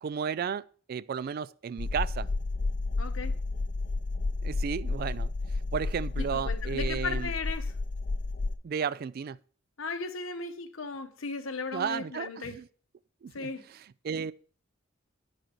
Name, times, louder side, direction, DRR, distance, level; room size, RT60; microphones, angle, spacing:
voice 1, 0.0-2.3 4.4-5.3 5.7-7.3 8.6-9.4 11.7-12.7 13.2-14.3, right 7 dB, 45° right, 0.3 m, -34 dB
sound 1, 1.8-8.6, left 3 dB, 40° left, 0.5 m, -31 dB
voice 2, 3.0-3.3 6.2-7.7 9.8-12.6 13.3-13.7, left 4 dB, 75° left, 1.0 m, -36 dB
10.5 x 6.5 x 4.5 m
head